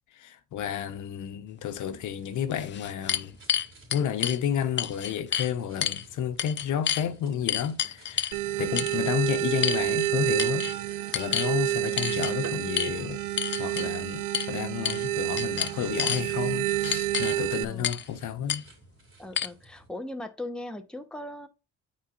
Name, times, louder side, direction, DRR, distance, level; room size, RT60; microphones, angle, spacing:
voice 1, 0.2-3.4 3.9-8.3 8.6-13.2 13.6-18.6, left 9 dB, 80° left, 0.9 m, -31 dB
sound 1, 1.9-2.0 2.5-4.4 4.8-5.5 5.8-6.0 6.4-7.0 7.5-8.4 8.8-9.0 9.6-10.1 10.4-10.7 11.1-11.5 12.0-12.3 12.8-12.9 13.4-13.9 14.3-14.5 14.8-15.1 15.4-16.2 16.8-17.4 17.8-18.1 18.5-18.6 19.4-19.5, left 9 dB, 40° left, 0.5 m, -29 dB
sound 2, 2.1-19.9, right 2 dB, 45° right, 3.4 m, -53 dB
sound 3, 8.3-17.6, right 15 dB, 80° right, 0.6 m, -29 dB
voice 2, 17.6-18.0 19.2-21.5, left 1 dB, 5° left, 1.0 m, -38 dB
9.1 x 4.3 x 2.5 m
cardioid pair, 90°, 30 cm